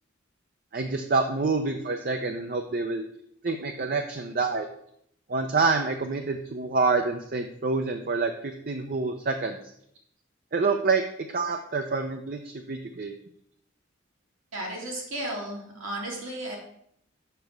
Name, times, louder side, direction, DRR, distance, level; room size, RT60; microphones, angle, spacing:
voice 1, 0.7-3.0 3.4-4.7 5.3-9.6 10.5-11.0 11.3-13.1, right 4 dB, 45° right, 5 dB, 0.6 m, -27 dB
voice 2, 14.5-16.6, right 1 dB, 85° right, -2 dB, 2.9 m, -34 dB
6.8 x 6.0 x 6.6 m, 0.72 s
head